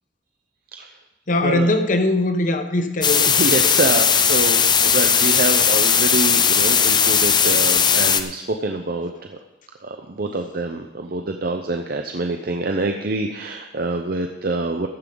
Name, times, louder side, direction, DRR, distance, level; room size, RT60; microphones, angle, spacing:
voice 1, 1.3-3.4 3.6-3.7, left 2 dB, 50° left, 8 dB, 1.0 m, -21 dB
sound 1, 3.0-8.2, left 7 dB, 25° left, 0.6 m, -17 dB
voice 2, 3.3-9.4 9.8-14.9, right 3 dB, 55° right, 4 dB, 0.7 m, -26 dB
14.5 x 10.5 x 3.9 m, 1.1 s
head